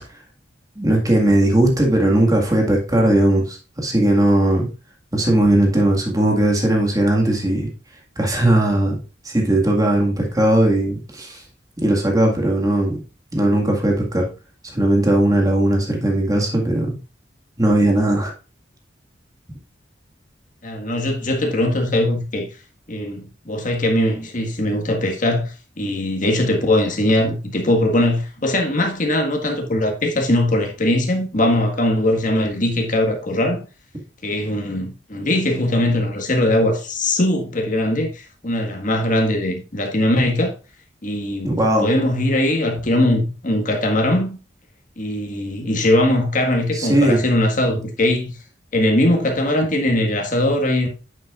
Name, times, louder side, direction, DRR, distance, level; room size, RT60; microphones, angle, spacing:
voice 1, 0.8-4.7 5.1-7.7 8.2-9.0 9.2-11.4 11.8-13.0 13.3-14.3 14.7-17.0 17.6-18.3 41.4-41.9 46.7-47.2, right 1 dB, 20° right, 1.9 m, -18 dB
voice 2, 20.6-22.5 22.9-33.6 34.2-40.5 41.0-44.4 45.0-48.4 48.7-50.9, left 1 dB, 45° left, 1.8 m, -20 dB
8.9 x 7.4 x 2.5 m
head